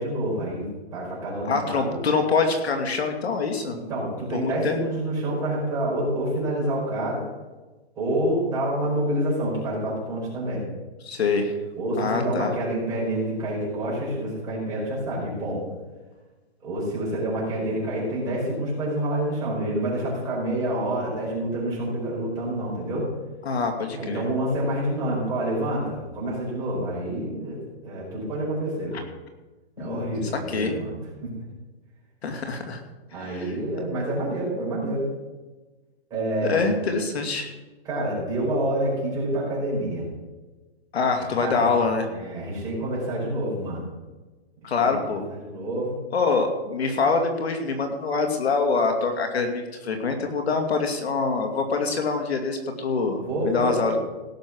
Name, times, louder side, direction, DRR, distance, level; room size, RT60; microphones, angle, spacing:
voice 1, 0.0-2.0 3.7-7.2 7.9-10.6 11.8-15.6 16.6-23.1 24.0-28.9 29.8-31.0 31.2-31.3 33.1-35.0 36.1-36.6 37.8-40.1 41.2-41.7 42.1-43.8 44.6-45.9 53.2-54.0, right 1 dB, 10° right, -7 dB, 4.9 m, -28 dB
voice 2, 1.4-3.8 4.4-4.7 11.0-11.5 12.0-12.5 23.4-24.2 29.8-30.7 32.2-32.8 33.2-33.5 36.5-37.5 40.9-42.1 44.6-45.2 46.1-54.0, left 4 dB, 75° left, 4 dB, 2.5 m, -25 dB
17.0 x 6.6 x 6.2 m, 1.2 s
hypercardioid pair, 175°, 32 cm